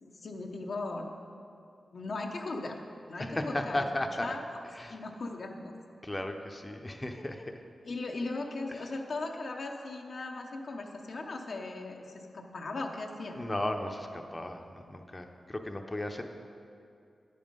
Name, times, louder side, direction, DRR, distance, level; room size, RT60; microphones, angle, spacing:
voice 1, 0.0-1.1 1.9-2.8 3.1-3.9 4.2-4.4 4.9-5.7 7.8-13.4, left 2 dB, 70° left, 2 dB, 0.8 m, -38 dB
voice 2, 3.2-4.3 4.7-5.0 6.0-7.6 8.7-8.9 13.3-16.2, left 1 dB, 25° left, 4 dB, 0.7 m, -35 dB
10.0 x 5.4 x 5.2 m, 2.5 s
cardioid pair, 40°, 0 cm